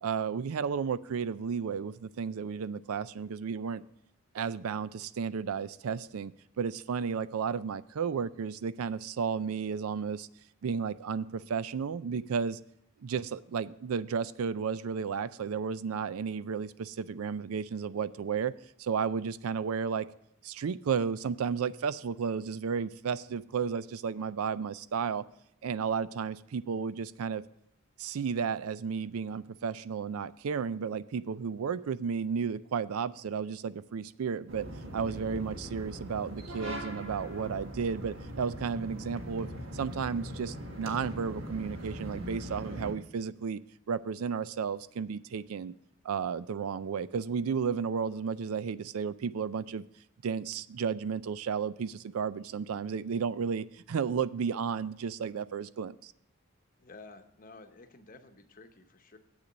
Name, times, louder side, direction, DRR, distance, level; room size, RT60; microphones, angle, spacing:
voice 1, 0.0-3.8 4.3-10.3 10.6-12.6 13.0-18.5 18.8-20.1 20.4-25.2 25.6-27.4 28.0-34.7 34.9-43.6 43.9-45.7 46.0-49.8 50.2-56.1, right 6 dB, 80° right, 17 dB, 0.4 m, -33 dB
sound 1, 34.5-42.9, equal, 60° right, 1.6 m, -41 dB
voice 2, 56.8-59.2, left 3 dB, 40° left, 7 dB, 0.9 m, -52 dB
8.1 x 6.9 x 6.2 m, 0.77 s
head